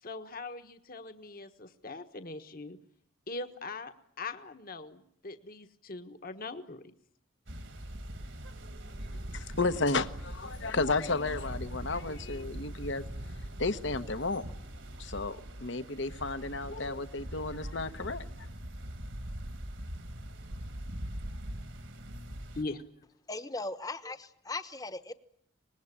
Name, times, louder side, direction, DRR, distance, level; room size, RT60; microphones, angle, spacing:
voice 1, 0.0-2.8 3.3-6.9 22.5-22.8, left 3 dB, 45° left, 8 dB, 1.4 m, -41 dB
sound 1, 7.5-22.6, equal, 60° right, 2.1 m, -42 dB
voice 2, 9.3-13.0 13.6-14.4 15.0-18.3, left 3 dB, 60° left, 11 dB, 1.2 m, -32 dB
voice 3, 23.3-25.1, left 2 dB, 15° left, 11 dB, 1.1 m, -38 dB
25.5 x 20.5 x 10.0 m, 0.68 s
head